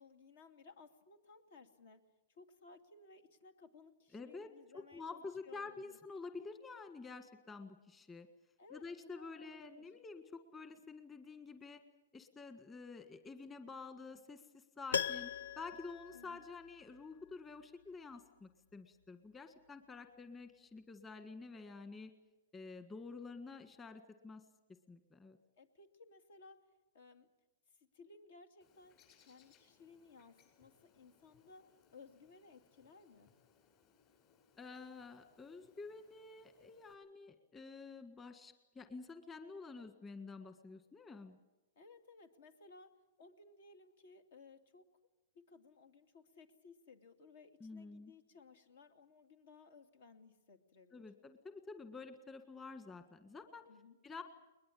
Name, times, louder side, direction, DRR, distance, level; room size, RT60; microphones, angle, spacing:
voice 1, 0.0-2.0 2.3-6.0 8.6-9.9 16.1-16.5 25.6-26.7 26.9-27.3 27.7-28.9 29.2-33.3 41.8-44.9 45.3-51.1 53.7-54.0, left 4 dB, 70° left, 8 dB, 2.6 m, -60 dB
voice 2, 4.1-4.5 4.9-8.3 8.7-11.8 12.1-22.1 22.5-24.4 24.9-25.4 34.6-41.4 47.6-48.1 50.9-53.6 54.0-54.2, left 4 dB, 15° left, 8 dB, 1.7 m, -49 dB
Piano, 14.9-17.0 17.3-17.4, left 7 dB, 85° left, 0.7 m, -40 dB
Bird, 28.6-36.9, left 6 dB, 35° left, 7.9 m, -71 dB
21.5 x 21.0 x 8.6 m, 1.1 s
hypercardioid pair, 140°, 0 cm